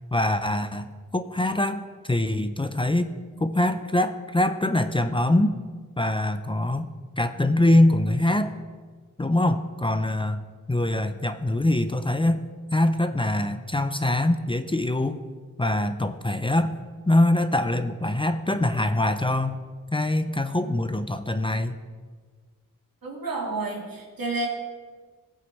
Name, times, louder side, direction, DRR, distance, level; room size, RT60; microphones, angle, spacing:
voice 1, 0.1-3.1 3.4-5.5 6.0-8.5 9.2-10.4 10.7-12.4 12.7-15.2 15.6-16.7 17.1-19.6 19.9-21.8, left 1 dB, 15° left, 9 dB, 0.5 m, -23 dB
voice 2, 23.0-24.5, right 2 dB, 90° right, -1 dB, 2.1 m, -30 dB
17.5 x 8.1 x 3.1 m, 1.5 s
wide cardioid pair, 75°, 34 cm